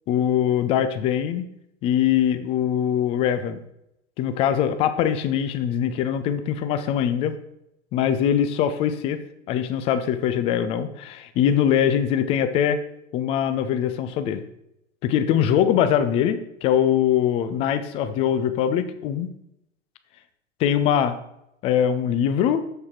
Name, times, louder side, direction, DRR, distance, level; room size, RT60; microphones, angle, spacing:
voice 1, 0.1-1.5 1.8-3.6 4.2-7.3 7.9-9.2 9.5-12.8 13.1-14.4 15.0-19.3 20.6-21.2 21.6-22.7, left 9 dB, 15° left, 11 dB, 0.4 m, -22 dB
7.2 x 6.5 x 4.5 m, 0.82 s
figure-of-eight pair, 95°, 36 cm